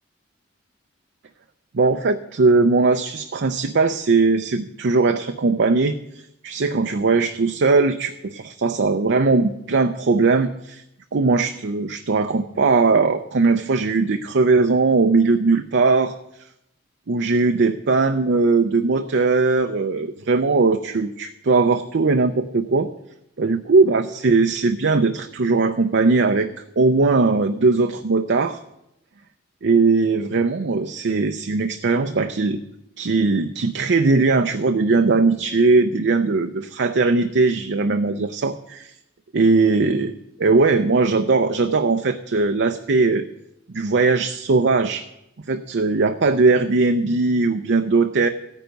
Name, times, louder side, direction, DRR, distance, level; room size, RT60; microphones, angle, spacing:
voice 1, 1.7-10.8 11.1-16.1 17.1-22.9 23.4-26.5 26.8-28.6 29.6-32.6 33.0-38.9 39.3-40.1 40.4-43.3 43.7-45.1 45.5-48.3, right 3 dB, 65° right, 7 dB, 0.6 m, -19 dB
14.5 x 9.2 x 5.3 m, 0.85 s
head